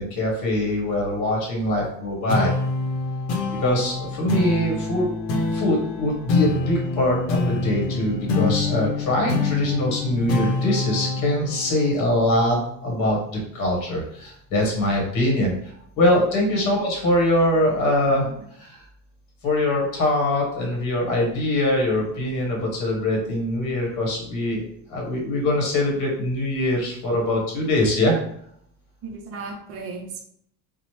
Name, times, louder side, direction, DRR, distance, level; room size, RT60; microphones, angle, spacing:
voice 1, 0.0-2.5 3.6-5.1 5.5-18.3 18.6-18.8 19.4-24.6 24.9-28.2, left 1 dB, 50° left, -1 dB, 0.9 m, -23 dB
sound 1, 2.3-13.1, left 3 dB, 80° left, 0.7 m, -26 dB
voice 2, 18.1-18.4 29.0-30.2, right 4 dB, 40° right, 3 dB, 0.5 m, -36 dB
2.8 x 2.0 x 3.0 m, 0.69 s
cardioid pair, 155°, 36 cm